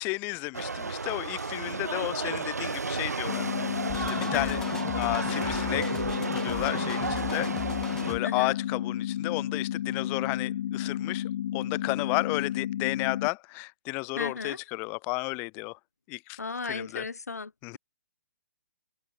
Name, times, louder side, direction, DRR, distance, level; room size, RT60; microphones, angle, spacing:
voice 1, 0.0-3.5 4.1-4.6 4.9-6.0 6.3-7.5 8.1-11.2 11.5-15.8 16.1-16.4 16.7-17.0 17.6-17.8, left 29 dB, 25° left, 0.4 m, -32 dB
sound 1, 0.5-8.2, right 4 dB, 85° right, 0.5 m, -33 dB
sound 2, 3.3-13.3, left 11 dB, 45° left, 1.5 m, -32 dB
sound 3, 3.9-8.2, left 4 dB, 5° left, 1.1 m, -41 dB
voice 2, 4.3-4.6 8.2-8.5 14.2-14.6 16.4-17.8, left 4 dB, 80° left, 0.8 m, -35 dB
figure-of-eight pair, 125°, 8 cm